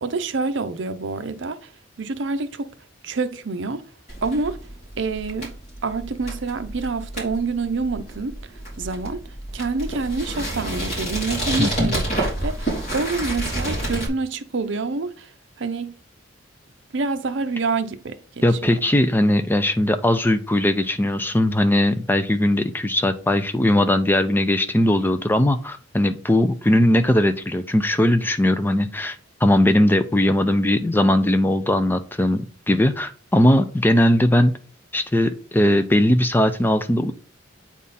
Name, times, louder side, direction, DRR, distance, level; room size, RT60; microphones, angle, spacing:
voice 1, 0.0-1.7 2.0-2.7 3.0-3.8 4.2-4.6 5.0-5.5 5.8-8.5 8.8-15.3 15.6-15.9 16.9-18.7, right 3 dB, 65° right, 0.6 m, -27 dB
sound 1, 4.1-14.1, right 1 dB, 35° left, 3.3 m, -29 dB
voice 2, 11.6-11.9 18.4-29.2 29.4-34.5 34.9-37.1, left 1 dB, 10° left, 0.4 m, -19 dB
8.5 x 3.6 x 4.1 m
head